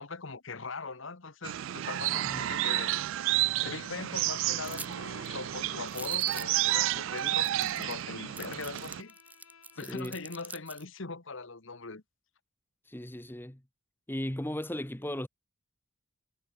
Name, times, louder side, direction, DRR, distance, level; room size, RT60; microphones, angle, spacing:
voice 1, 0.0-2.9 3.6-9.1 9.7-12.0, left 4 dB, 65° left, 1.4 m, -41 dB
sound 1, 1.4-9.0, right 15 dB, 65° right, 0.3 m, -31 dB
voice 2, 2.1-2.5 9.9-10.2 12.9-13.6 14.1-15.3, left 1 dB, 10° left, 1.0 m, -36 dB
Bowed string instrument, 3.8-10.1, left 7 dB, 85° left, 5.9 m, -56 dB
sound 2, 4.6-4.9 5.3-5.4 5.9-6.6 7.2-7.3 7.4-8.0 8.4-10.8, right 3 dB, 5° right, 1.3 m, -45 dB
head